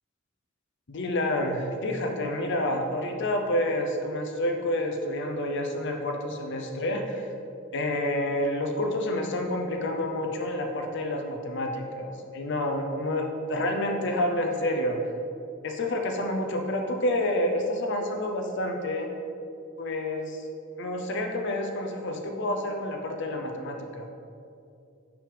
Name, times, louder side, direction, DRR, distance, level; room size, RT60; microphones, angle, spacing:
voice 1, 0.9-7.3 7.7-15.0 15.6-19.1 19.8-20.5 20.8-24.1, left 1 dB, 60° left, 3 dB, 0.7 m, -29 dB
6.0 x 5.1 x 3.4 m, 2.5 s
head